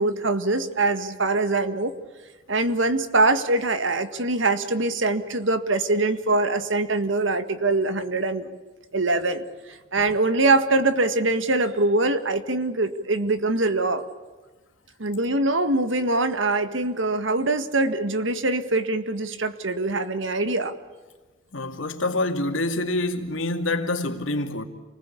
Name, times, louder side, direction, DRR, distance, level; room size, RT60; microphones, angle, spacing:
voice 1, 0.0-1.9 2.5-8.5 8.9-9.4 9.7-14.1 15.0-20.7, right 2 dB, 75° right, 1.8 m, -23 dB
voice 2, 21.5-24.6, left 2 dB, 85° left, 2.5 m, -26 dB
28.5 x 20.0 x 8.5 m
head